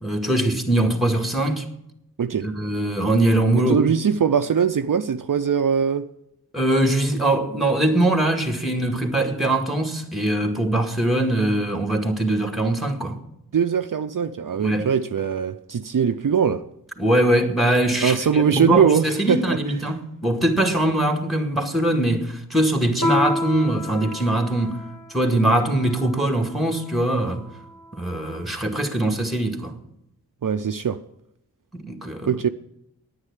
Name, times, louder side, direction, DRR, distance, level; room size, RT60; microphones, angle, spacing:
voice 1, 0.0-1.7 2.4-3.8 6.5-13.2 14.6-14.9 17.0-24.8 25.1-27.4 27.9-29.7 31.7-32.3, right 1 dB, ahead, 2.0 m, -22 dB
voice 2, 2.2-2.5 3.7-6.1 13.5-16.6 18.0-19.6 30.4-31.0 32.3-32.5, right 7 dB, 60° right, 0.5 m, -21 dB
Piano, 23.0-28.0, left 2 dB, 60° left, 1.7 m, -30 dB
9.8 x 9.5 x 9.9 m
wide cardioid pair, 65°, 37 cm